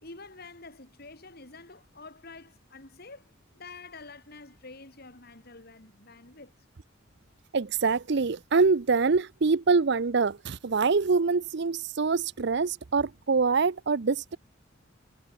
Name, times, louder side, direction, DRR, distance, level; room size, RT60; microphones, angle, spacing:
voice 1, 0.0-6.5, left 3 dB, 50° left, 3.8 m, -48 dB
voice 2, 7.5-14.4, right 4 dB, 60° right, 0.6 m, -25 dB
head